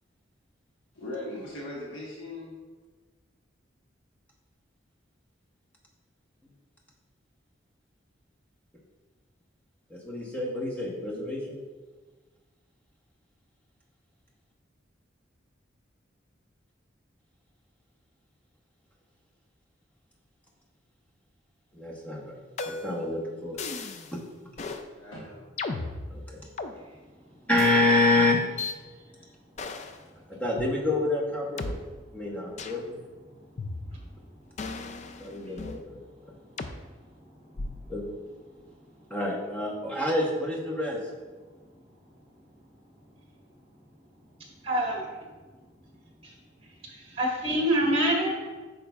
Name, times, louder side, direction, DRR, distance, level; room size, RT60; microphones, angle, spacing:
voice 1, 0.9-2.6 24.9-25.5, left 1 dB, 85° left, -5 dB, 1.1 m, -39 dB
voice 2, 9.9-11.6 21.7-22.4 22.6-23.6 24.1-24.2 26.1-26.5 27.5-28.4 30.3-31.8 32.1-33.0 35.2-36.0 37.9-38.0 39.1-41.0, left 2 dB, 10° left, -2 dB, 1.0 m, -27 dB
sound 1, 22.6-23.0 23.6-24.1 24.6-24.8 25.6-26.7 27.6-27.7 28.6-28.8 29.6-30.0 30.6-30.7 31.6-31.7 32.6-32.8 33.6-34.1 34.6-35.8 36.6-36.8 37.6-37.9, left 3 dB, 35° left, 0.3 m, -36 dB
voice 3, 26.7-27.5 28.8-30.4 31.7-31.8 32.1-32.2 32.5-32.7 33.2-37.9 38.5-39.1 41.4-48.7, right 1 dB, 30° right, -2 dB, 1.4 m, -34 dB
8.4 x 5.3 x 2.3 m, 1.3 s
head